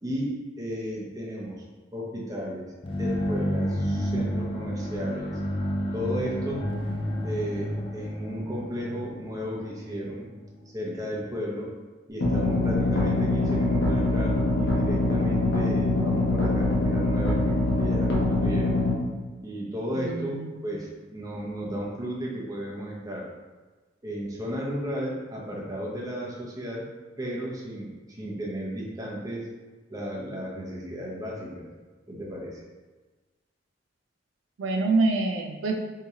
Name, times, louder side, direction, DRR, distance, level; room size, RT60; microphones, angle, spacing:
voice 1, 0.0-1.6 1.9-2.7 3.0-5.4 5.9-6.6 7.2-10.3 10.7-11.7 12.1-18.8 19.4-20.4 20.6-23.3 24.0-26.9 27.2-29.5 29.9-31.7 32.1-32.6, equal, 20° right, -4 dB, 0.7 m, -34 dB
sound 1, 2.8-10.6, equal, 30° left, 0.3 m, -30 dB
sound 2, 12.2-19.0, left 2 dB, 70° left, 0.8 m, -24 dB
voice 2, 20.0-20.5 34.6-35.7, right 3 dB, 80° right, 2 dB, 0.4 m, -25 dB
3.0 x 2.7 x 3.6 m, 1.3 s
head